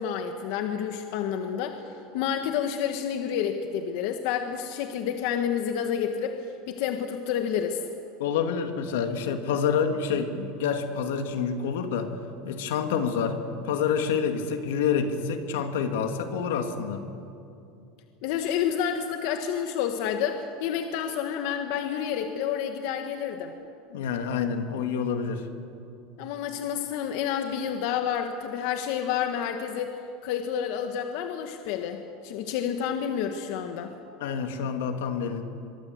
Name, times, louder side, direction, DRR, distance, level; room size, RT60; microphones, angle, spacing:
voice 1, 0.0-1.8 2.1-6.3 6.7-7.8 18.2-23.5 26.2-29.9 30.2-33.9, left 8 dB, 65° left, 5 dB, 1.7 m, -29 dB
voice 2, 8.2-12.1 12.4-13.4 13.6-17.0 23.9-25.4 34.2-35.4, left 6 dB, 85° left, 6 dB, 2.5 m, -27 dB
23.5 x 23.0 x 8.2 m, 2.6 s
supercardioid pair, 145°, 0 cm